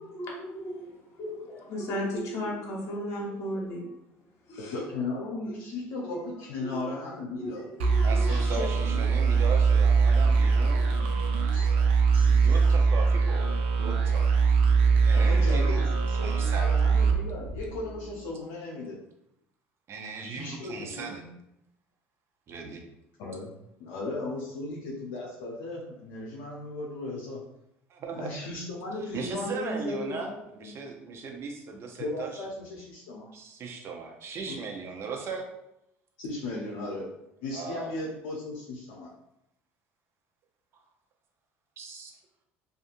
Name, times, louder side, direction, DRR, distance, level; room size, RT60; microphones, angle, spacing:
voice 1, 0.0-3.9 4.5-4.8 6.1-6.2 6.6-6.8 7.4-8.4, equal, 60° left, -3 dB, 1.1 m, -35 dB
voice 2, 4.6-7.7 8.2-9.2 11.5-11.7 12.1-12.8 15.1-19.0 20.2-21.2 23.2-23.5 23.8-27.4 28.1-30.8 32.0-33.3 34.5-34.6 36.2-37.1 37.4-39.1, left 2 dB, 80° left, -4 dB, 0.6 m, -36 dB
sound 1, 7.8-18.1, right 5 dB, 90° right, 0.4 m, -22 dB
voice 3, 8.0-10.9 12.3-14.2 15.0-15.9 16.2-16.7 19.9-21.2 22.5-22.8 27.9-28.3 29.1-32.4 33.3-35.5 37.5-38.0 41.8-42.1, right 5 dB, 50° right, 2 dB, 0.6 m, -37 dB
2.6 x 2.5 x 2.5 m, 0.81 s
supercardioid pair, 80°, 6 cm